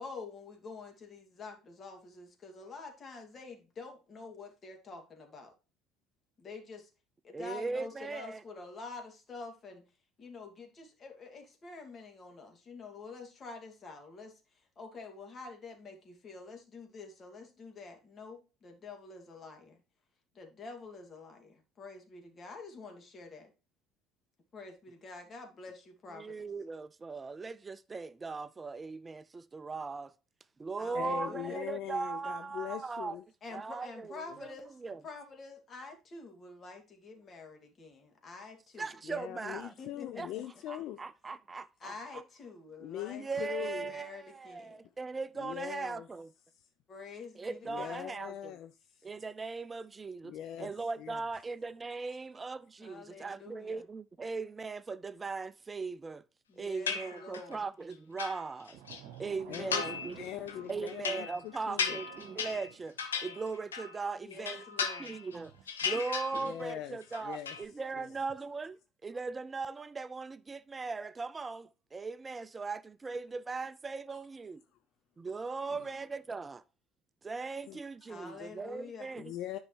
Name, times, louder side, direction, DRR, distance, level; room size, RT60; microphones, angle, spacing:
voice 1, 0.0-5.5 6.4-6.9 7.2-9.8 10.2-19.8 20.3-23.5 24.5-26.4 30.8-31.6 33.4-38.9 39.7-40.4 41.8-44.8 46.9-48.1 52.8-53.9 56.5-57.6 64.2-65.2 65.9-66.0 66.4-66.5 78.1-79.1, left 4 dB, 40° left, 2.5 m, -48 dB
voice 2, 7.3-8.4 26.1-30.1 30.6-33.2 33.5-34.5 34.8-35.0 38.8-39.7 40.2-40.3 40.7-42.2 43.2-46.3 47.4-48.5 49.0-56.2 56.6-58.8 59.2-60.2 60.7-63.0 63.2-64.6 65.0-65.5 65.8-74.6 75.2-76.6 77.2-79.3, right 4 dB, 25° right, 0.4 m, -39 dB
voice 3, 30.9-33.2 34.3-34.4 39.0-41.0 42.8-43.9 45.4-46.1 46.5-46.6 47.6-49.1 50.2-50.7 51.0-51.2 59.5-59.9 60.1-62.0 66.3-67.6 68.0-68.1 75.7-75.9 77.7-77.8 79.2-79.6, left 12 dB, 60° left, 0.5 m, -41 dB
sound 1, 56.9-57.6 57.9-59.0 59.5-60.2 60.5-64.0 64.3-65.4 65.7-66.7 67.0-67.6, left 6 dB, 90° left, 1.0 m, -36 dB
sound 2, 58.7-63.2 65.3-65.6, right 10 dB, 70° right, 0.9 m, -52 dB
10.0 x 5.4 x 3.2 m
hypercardioid pair, 65°, 0 cm